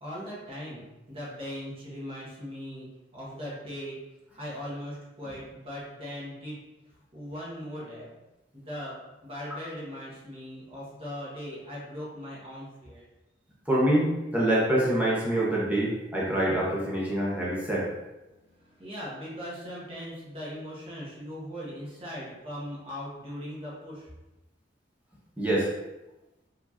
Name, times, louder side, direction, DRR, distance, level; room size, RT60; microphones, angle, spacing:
voice 1, 0.0-2.9 3.1-4.0 4.3-6.6 7.1-8.1 8.5-9.0 9.2-13.0 18.4-24.1, equal, 30° right, -7 dB, 1.5 m, -39 dB
voice 2, 13.7-17.9 25.4-25.7, right 1 dB, 10° right, -6 dB, 1.1 m, -25 dB
4.7 x 3.7 x 2.9 m, 0.99 s
head